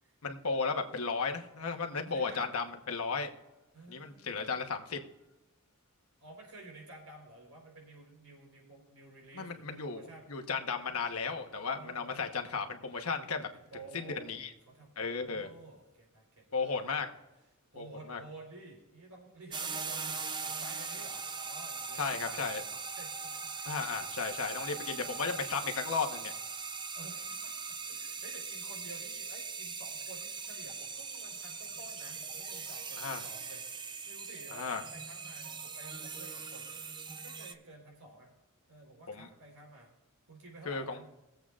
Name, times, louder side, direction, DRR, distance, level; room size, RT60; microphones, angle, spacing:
voice 1, 0.2-3.3 3.9-5.0 9.4-13.5 13.9-14.5 15.0-15.5 16.5-17.1 17.8-18.2 22.0-22.6 23.6-26.3 33.0-33.2 34.5-34.8 39.1-39.3 40.6-41.0, left 5 dB, 70° left, 4 dB, 1.2 m, -35 dB
voice 2, 2.1-2.5 3.7-4.4 6.2-10.3 11.5-12.3 13.5-14.4 14.7-17.1 17.7-22.5 23.0-24.0 24.8-25.2 26.9-33.7 34.1-36.7 37.2-38.3 38.7-39.9 40.3-41.1, right 2 dB, 80° right, 0 dB, 4.1 m, -52 dB
sound 1, 19.5-37.5, right 5 dB, 20° right, 0.5 m, -40 dB
22.0 x 7.9 x 2.5 m, 1.0 s
head